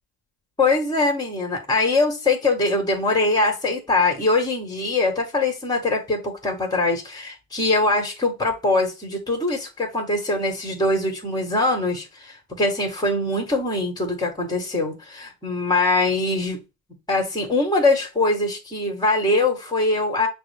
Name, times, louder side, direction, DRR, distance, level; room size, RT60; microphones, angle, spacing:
voice 1, 0.6-16.6 17.1-20.3, left 2 dB, 10° left, 1.6 m, -22 dB
5.8 x 2.1 x 3.5 m
hypercardioid pair, 75°, 42 cm